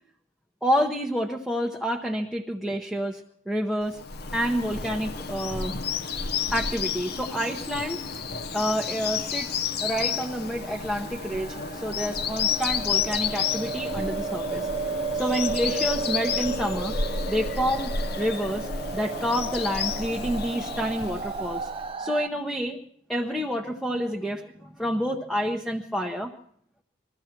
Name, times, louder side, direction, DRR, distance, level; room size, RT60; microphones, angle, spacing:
voice 1, 0.6-4.0 4.3-5.8 6.5-8.0 8.5-14.7 15.1-16.9 17.3-21.7 22.0-22.8 23.1-26.3, equal, ahead, 1 dB, 0.8 m, -28 dB
Bird vocalization bird call bird song, 3.9-21.9, left 6 dB, 50° left, 0.8 m, -31 dB
sound 1, 10.1-22.3, right 4 dB, 25° right, 0.6 m, -34 dB
22.0 x 14.5 x 4.5 m, 0.65 s
head